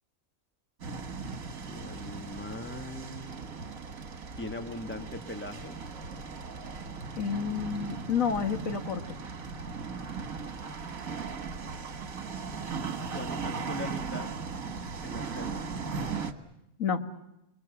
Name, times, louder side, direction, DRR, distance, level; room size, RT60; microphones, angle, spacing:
sound 1, 0.8-16.3, right 5 dB, 70° right, 2.0 m, -38 dB
voice 1, 1.6-3.3 4.3-5.8 12.4-12.6 13.1-14.3 15.0-15.7, left 2 dB, 10° left, 6 dB, 1.8 m, -40 dB
voice 2, 7.2-9.0 16.8-17.0, left 6 dB, 70° left, 7 dB, 2.0 m, -29 dB
29.5 x 21.5 x 7.1 m, 0.86 s
omnidirectional pair, 1.5 m